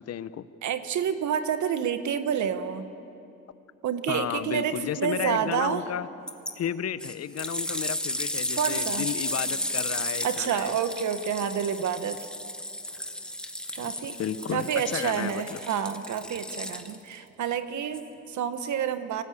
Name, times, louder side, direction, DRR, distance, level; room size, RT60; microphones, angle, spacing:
voice 1, 0.0-0.5 4.1-6.1 6.6-10.7 14.2-15.6, left 9 dB, 55° left, 15 dB, 0.8 m, -33 dB
voice 2, 0.6-2.9 3.8-5.8 8.6-9.1 10.2-12.2 13.7-14.2 14.5-19.2, right 8 dB, 70° right, 10 dB, 1.4 m, -29 dB
sound 1, 6.3-6.5 7.0-17.2 17.9-18.0, left 1 dB, 5° left, 1.6 m, -33 dB
24.0 x 18.5 x 8.6 m, 2.7 s
cardioid pair, 90°, 30 cm